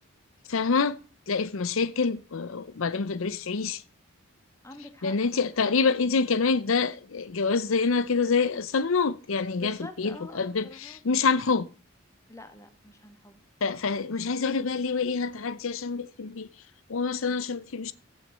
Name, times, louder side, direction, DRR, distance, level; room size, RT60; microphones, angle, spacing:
voice 1, 0.5-1.0 1.3-3.8 5.0-11.7 13.6-16.5 16.9-17.9, left 4 dB, 75° left, 0.6 m, -26 dB
voice 2, 4.6-5.5 9.6-11.0 12.3-13.4, left 1 dB, 15° left, 1.7 m, -46 dB
15.0 x 6.4 x 8.1 m
head